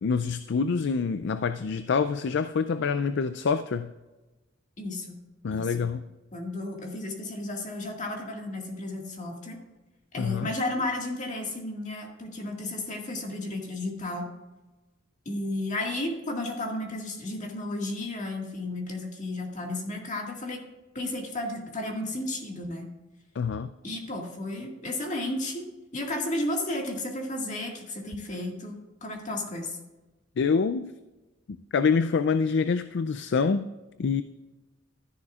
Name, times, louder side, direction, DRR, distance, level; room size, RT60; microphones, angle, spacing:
voice 1, 0.0-3.9 5.4-6.0 10.2-10.5 23.4-23.7 30.4-30.9 31.5-33.7 34.0-34.2, left 5 dB, 65° left, 12 dB, 0.4 m, -26 dB
voice 2, 4.8-5.2 5.5-5.9 6.3-9.6 10.1-14.3 15.3-20.6 20.9-22.9 23.8-25.6 25.9-29.8, left 1 dB, 40° left, 0 dB, 1.9 m, -33 dB
13.0 x 10.5 x 2.4 m, 1.1 s
head